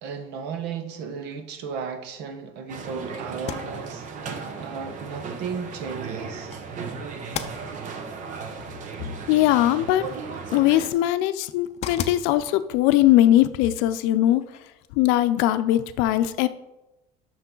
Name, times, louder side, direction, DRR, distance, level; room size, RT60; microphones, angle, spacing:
voice 1, 0.0-6.6, right 6 dB, 60° right, 7 dB, 1.0 m, -35 dB
sound 1, 2.7-10.9, right 5 dB, 40° right, 0.8 m, -36 dB
sound 2, 3.3-15.0, left 8 dB, 35° left, 0.6 m, -41 dB
voice 2, 9.3-10.0 10.5-14.4 14.9-16.5, left 14 dB, 80° left, 12 dB, 0.6 m, -20 dB
8.2 x 6.4 x 3.8 m, 0.95 s
cardioid pair, 160°, 19 cm